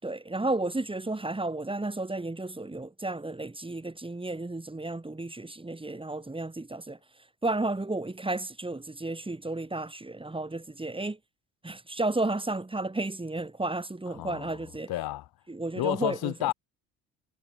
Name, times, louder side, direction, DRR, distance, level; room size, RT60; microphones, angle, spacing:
voice 1, 0.0-7.0 7.4-11.2 11.6-14.9 15.5-16.5, right 2 dB, 15° right, 3.9 m, -32 dB
voice 2, 14.1-15.3 15.8-16.5, left 16 dB, 65° left, 4.8 m, -31 dB
supercardioid pair, 70°, 39 cm